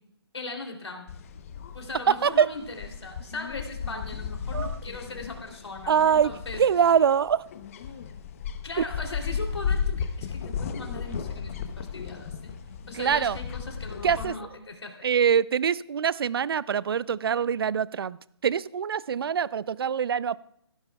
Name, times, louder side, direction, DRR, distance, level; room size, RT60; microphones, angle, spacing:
voice 1, 0.3-1.1 1.7-6.6 8.6-12.5 12.9-15.1, left 3 dB, 85° left, 3 dB, 2.9 m, -39 dB
sound 1, 1.1-14.3, left 6 dB, 35° left, 0.8 m, -35 dB
voice 2, 2.1-2.5 4.5-4.8 5.9-7.4 8.8-8.9 12.9-13.4 14.0-14.4 15.0-18.2 18.4-20.4, right 7 dB, 60° right, 21 dB, 0.4 m, -24 dB
17.5 x 15.5 x 2.3 m, 0.75 s
hypercardioid pair, 155°, 14 cm